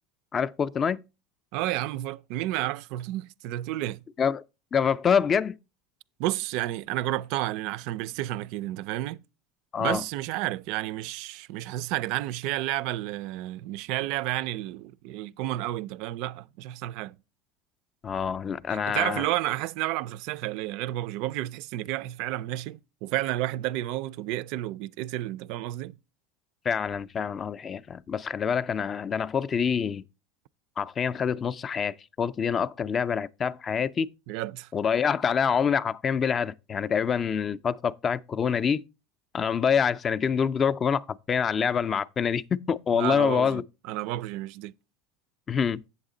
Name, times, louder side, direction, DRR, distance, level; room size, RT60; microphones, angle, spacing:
voice 1, 0.3-1.0 4.2-4.4 4.7-5.6 9.7-10.0 18.0-19.3 26.7-30.0 30.8-34.1 34.7-38.8 39.3-43.6 45.5-45.8, left 7 dB, 25° left, 0.3 m, -26 dB
voice 2, 1.5-4.0 6.2-9.2 9.8-17.2 18.7-25.9 34.3-34.7 42.9-44.7, right 15 dB, 60° right, 0.3 m, -31 dB
8.0 x 7.2 x 3.8 m
supercardioid pair, 135°, 0 cm